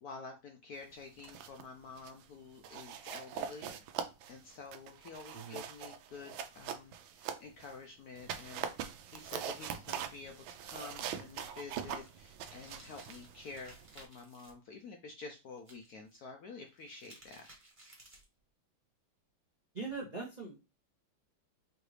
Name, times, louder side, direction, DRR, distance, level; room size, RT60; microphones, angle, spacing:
voice 1, 0.0-3.7 4.3-17.5, left 4 dB, 70° left, 4 dB, 0.9 m, -49 dB
sound 1, 1.0-1.7 2.0-2.2 2.6-7.8 8.2-14.1, right 8 dB, 85° right, 1.4 m, -43 dB
voice 2, 5.3-5.6 19.7-20.6, right 4 dB, 50° right, -3 dB, 0.5 m, -42 dB
sound 2, 11.2-14.5 15.6-16.2 16.7-18.4, right 1 dB, 20° right, 0.9 m, -58 dB
4.7 x 2.5 x 3.1 m, 0.27 s
omnidirectional pair, 2.1 m